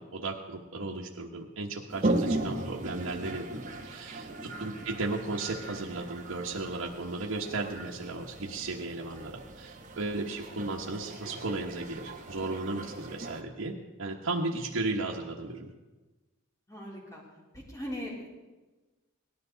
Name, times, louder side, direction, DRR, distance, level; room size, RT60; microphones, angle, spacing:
voice 1, 0.0-15.7, right 2 dB, 85° right, -4 dB, 1.2 m, -35 dB
Toilet flush, 1.9-13.4, right 2 dB, 35° right, 1.3 m, -37 dB
voice 2, 16.7-17.2 17.5-18.3, equal, 15° left, -3 dB, 3.4 m, -40 dB
18.5 x 12.5 x 4.0 m, 1.2 s
head